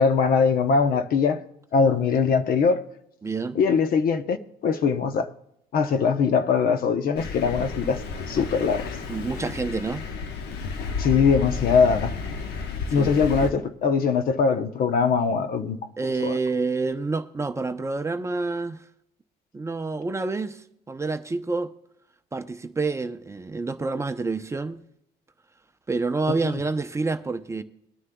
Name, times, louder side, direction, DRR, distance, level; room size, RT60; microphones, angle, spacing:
voice 1, 0.0-1.4 1.7-2.8 3.5-4.4 4.6-5.3 5.7-9.0 11.0-12.1 12.9-15.8 16.2-16.4, left 5 dB, 60° left, 0.9 m, -21 dB
voice 2, 3.2-3.6 9.1-10.0 13.0-13.2 16.0-18.8 19.5-21.7 22.3-24.8 25.9-27.6, right 3 dB, 15° right, 0.6 m, -28 dB
Thunder, 7.2-13.5, left 5 dB, 75° left, 1.1 m, -32 dB
22.0 x 9.7 x 2.3 m
cardioid pair, 110°, 17 cm